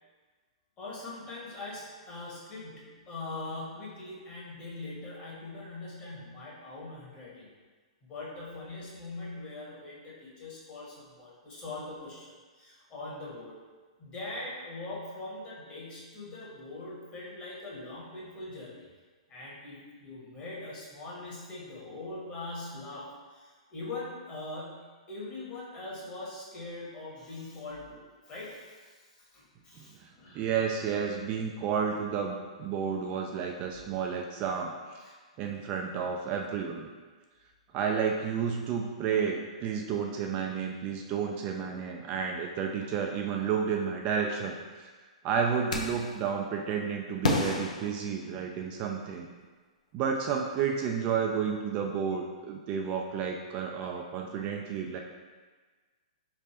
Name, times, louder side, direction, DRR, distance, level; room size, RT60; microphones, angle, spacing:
voice 1, 0.8-7.5 8.0-13.5 14.0-18.9 19.3-30.4 35.0-35.2, left 2 dB, 30° left, -6 dB, 1.2 m, -42 dB
voice 2, 29.8-35.0 35.4-36.9 37.7-44.9 45.2-49.3 49.9-55.0, right 6 dB, 35° right, 1 dB, 0.3 m, -31 dB
sound 1, 45.7-46.2 47.2-48.8, left 2 dB, 85° left, 0.6 m, -31 dB
3.4 x 2.5 x 4.2 m, 1.4 s
hypercardioid pair, 130°, 4 cm